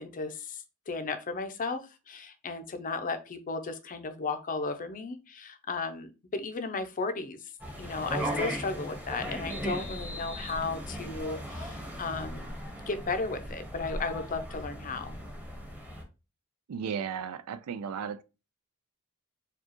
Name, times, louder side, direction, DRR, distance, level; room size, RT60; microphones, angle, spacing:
voice 1, 0.0-7.5 7.8-12.5 12.9-15.2, left 3 dB, 40° left, 0.5 m, -35 dB
sound 1, 7.6-16.0, equal, 5° right, 0.9 m, -37 dB
voice 2, 16.7-18.2, right 7 dB, 80° right, 0.4 m, -35 dB
4.7 x 2.3 x 2.9 m
head